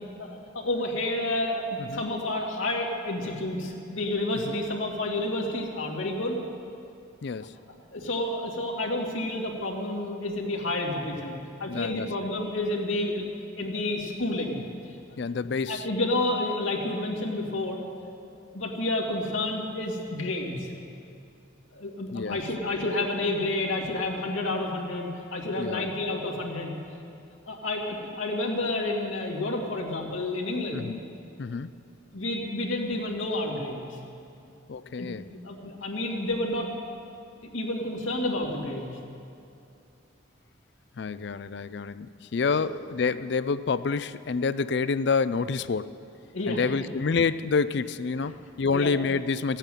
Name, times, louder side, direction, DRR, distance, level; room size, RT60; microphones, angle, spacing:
voice 1, 0.2-6.4 7.9-11.3 11.6-13.3 13.6-15.2 15.7-17.8 18.5-20.7 21.7-26.7 27.5-30.9 32.1-33.9 35.0-35.1 35.4-36.7 37.5-39.0 42.6-42.7 46.3-46.9 48.3-48.4 48.7-48.9, left 2 dB, 85° left, -1 dB, 2.3 m, -30 dB
voice 2, 7.2-7.6 11.7-12.1 15.2-15.8 22.1-22.4 25.6-25.9 30.7-31.0 31.4-31.7 34.7-35.3 41.0-45.9 46.5-49.6, left 5 dB, 55° left, 15 dB, 0.4 m, -28 dB
14.5 x 8.9 x 9.2 m, 2.6 s
head